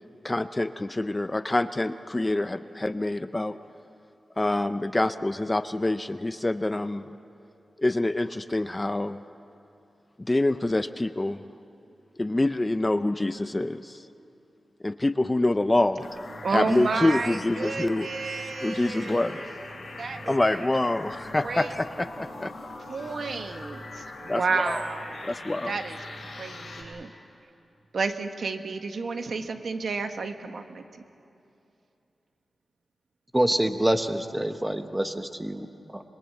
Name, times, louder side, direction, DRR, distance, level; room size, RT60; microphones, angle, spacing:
voice 1, 0.2-3.6 4.4-7.1 7.8-9.2 10.2-11.4 12.2-14.0 14.8-16.1 16.5-18.1 18.6-19.6 20.3-22.5 23.3-23.4 24.3-24.8 25.2-25.8, left 2 dB, 15° left, 11 dB, 0.5 m, -26 dB
sound 1, 16.0-26.8, left 2 dB, 55° left, 6.6 m, -41 dB
voice 2, 16.4-19.5 20.0-20.6 21.4-21.7 22.8-25.3 25.6-26.0 26.4-27.1 27.9-30.8, right 4 dB, 60° right, 7 dB, 1.3 m, -31 dB
voice 3, 33.3-36.0, right 1 dB, 10° right, 8 dB, 1.0 m, -26 dB
26.5 x 22.0 x 7.7 m, 2.7 s
wide cardioid pair, 160°, 0 cm